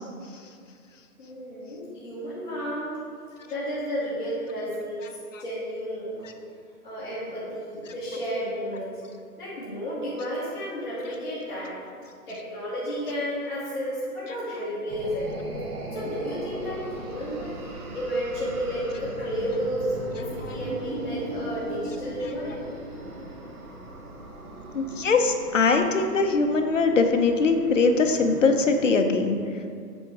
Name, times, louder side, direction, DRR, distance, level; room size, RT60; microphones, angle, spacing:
voice 1, 1.2-2.9 3.4-6.3 6.8-9.0 9.4-11.7 12.3-15.3 15.9-22.6, equal, 30° left, -11 dB, 1.1 m, -32 dB
sound 1, 14.9-28.7, right 1 dB, 65° right, 1.2 m, -38 dB
voice 2, 24.7-29.4, left 4 dB, 50° left, 5 dB, 0.6 m, -21 dB
7.9 x 3.6 x 4.6 m, 2.2 s
hypercardioid pair, 175°, 48 cm